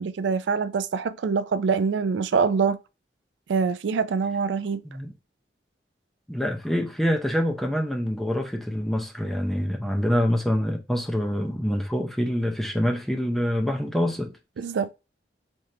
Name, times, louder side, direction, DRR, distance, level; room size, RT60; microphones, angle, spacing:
voice 1, 0.0-2.8 3.5-4.8 14.6-14.9, right 5 dB, 80° right, 0.4 m, -24 dB
voice 2, 6.3-14.3, equal, ahead, 0.5 m, -26 dB
4.5 x 2.6 x 2.7 m
head